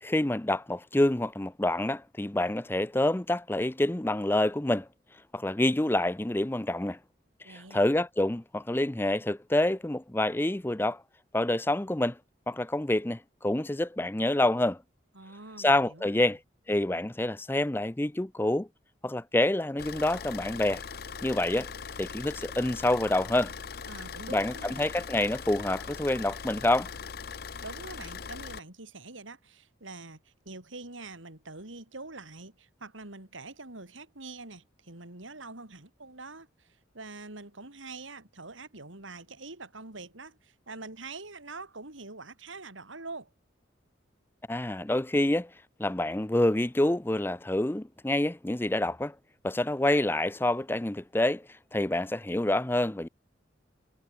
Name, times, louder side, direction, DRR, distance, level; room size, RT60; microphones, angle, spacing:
voice 1, 0.0-4.9 5.3-7.0 7.7-11.0 11.3-12.2 12.5-14.8 15.6-16.4 16.7-18.7 19.0-20.8 21.2-21.7 22.0-23.5 24.3-26.9 44.5-45.5 45.8-49.1 49.4-53.1, left 1 dB, 10° left, 0.5 m, -27 dB
voice 2, 7.4-7.8 15.1-16.4 23.8-24.8 27.6-43.3, right 3 dB, 90° right, 4.1 m, -45 dB
Car / Idling, 19.8-28.6, left 6 dB, 50° left, 0.7 m, -40 dB
head